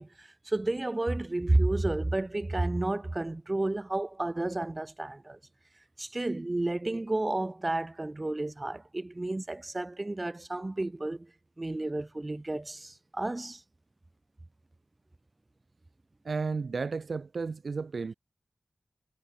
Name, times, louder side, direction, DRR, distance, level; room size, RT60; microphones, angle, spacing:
voice 1, 0.0-5.4 6.0-11.3 11.6-13.6, right 2 dB, 25° right, 1.7 m, -31 dB
voice 2, 16.2-18.1, right 4 dB, 75° right, 0.6 m, -33 dB
wide cardioid pair, 90°, 0 cm